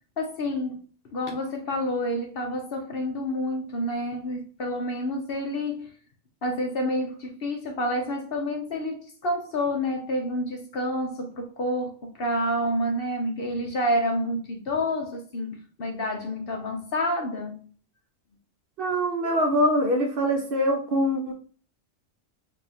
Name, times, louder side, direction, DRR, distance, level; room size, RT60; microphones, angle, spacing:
voice 1, 0.2-0.8 1.1-5.9 6.4-17.7, left 1 dB, 55° left, 0.8 m, -29 dB
voice 2, 18.8-21.3, equal, 55° right, 0.8 m, -23 dB
5.0 x 2.7 x 2.8 m
omnidirectional pair, 1.3 m